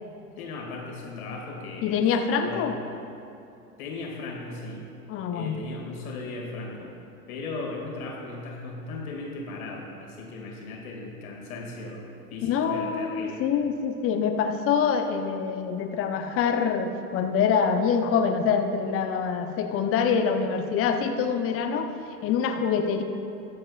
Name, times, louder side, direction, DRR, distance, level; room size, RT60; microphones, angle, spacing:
voice 1, 0.4-2.0 2.4-2.8 3.8-4.9 5.3-6.9 7.3-13.4, left 3 dB, 65° left, -1 dB, 2.3 m, -37 dB
voice 2, 1.8-2.8 5.1-5.5 12.4-21.9 22.2-23.0, left 6 dB, 30° left, 6 dB, 0.8 m, -25 dB
20.5 x 7.7 x 2.4 m, 2.7 s
figure-of-eight pair, 85°, 46 cm